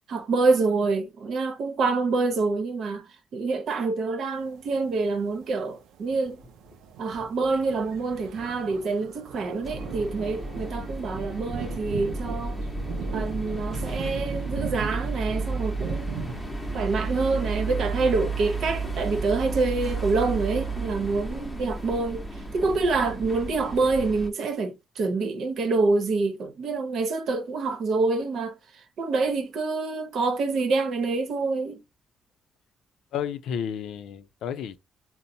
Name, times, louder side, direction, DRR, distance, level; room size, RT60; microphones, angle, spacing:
voice 1, 0.1-3.1 3.3-6.4 7.0-12.6 13.1-16.3 16.7-22.2 22.5-28.5 29.0-31.8, right 3 dB, 65° right, 0.8 m, -26 dB
sound 1, 4.4-16.7, right 6 dB, 90° right, 0.4 m, -39 dB
sound 2, 9.6-24.3, right 3 dB, 15° left, 0.9 m, -32 dB
voice 2, 33.1-34.8, left 8 dB, 80° left, 0.4 m, -32 dB
3.9 x 2.0 x 2.7 m
cardioid pair, 90°, 0 cm